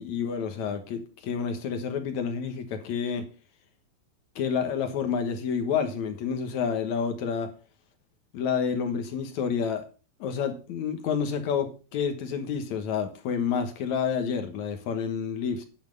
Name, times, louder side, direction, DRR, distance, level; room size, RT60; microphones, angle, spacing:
voice 1, 0.0-3.3 4.4-7.5 8.3-9.8 10.2-15.6, left 6 dB, 60° left, 2.1 m, -29 dB
9.7 x 7.2 x 5.3 m
omnidirectional pair, 4.6 m